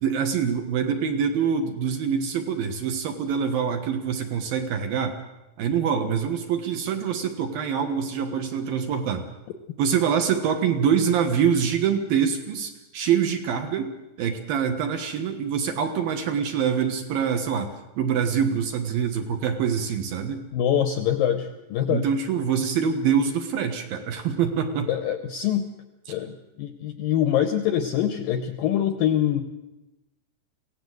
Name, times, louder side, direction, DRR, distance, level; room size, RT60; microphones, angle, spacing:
voice 1, 0.0-5.2 5.6-9.3 9.8-20.4 21.9-24.9, right 7 dB, 65° right, 6 dB, 2.8 m, -25 dB
voice 2, 20.5-22.1 24.9-25.7 26.1-29.4, left 10 dB, 75° left, 8 dB, 2.1 m, -24 dB
23.5 x 17.0 x 7.9 m, 0.99 s
omnidirectional pair, 5.2 m